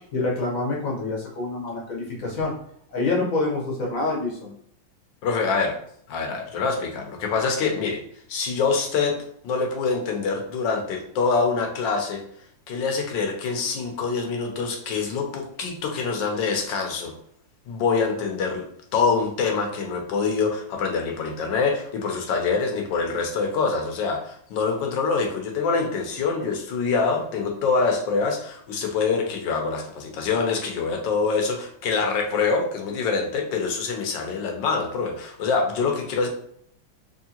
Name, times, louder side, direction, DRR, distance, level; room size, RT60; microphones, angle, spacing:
voice 1, 0.1-2.5 2.9-4.5, left 2 dB, 50° left, -2 dB, 1.1 m, -26 dB
voice 2, 5.2-5.8 6.1-8.0 8.3-9.1 9.4-12.2 12.7-17.1 17.7-18.6 18.9-36.3, left 4 dB, 70° left, 2 dB, 1.3 m, -25 dB
3.6 x 3.2 x 2.8 m, 0.66 s
omnidirectional pair, 2.3 m